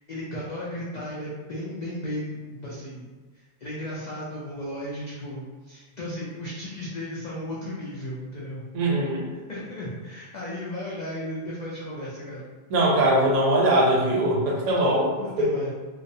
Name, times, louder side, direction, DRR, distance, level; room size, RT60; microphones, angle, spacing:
voice 1, 0.1-3.1 3.6-8.6 9.5-12.4 15.2-15.7, equal, 80° left, -7 dB, 0.3 m, -35 dB
voice 2, 8.7-9.3 12.7-15.5, right 1 dB, 75° right, -3 dB, 1.0 m, -21 dB
2.4 x 2.0 x 2.6 m, 1.3 s
omnidirectional pair, 1.3 m